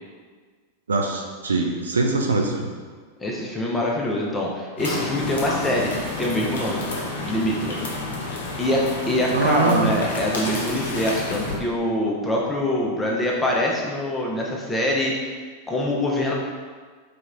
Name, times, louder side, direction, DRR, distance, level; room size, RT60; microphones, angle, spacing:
voice 1, 0.9-2.7 9.3-9.9, right 3 dB, 70° right, 1 dB, 0.4 m, -22 dB
voice 2, 3.2-6.8 7.2-7.9 8.6-15.4 15.7-16.3, left 1 dB, 10° left, -2 dB, 0.6 m, -24 dB
sound 1, 4.8-11.6, left 2 dB, 65° left, 0.7 m, -30 dB
3.3 x 3.0 x 3.8 m, 1.5 s
figure-of-eight pair, 90°, 0 cm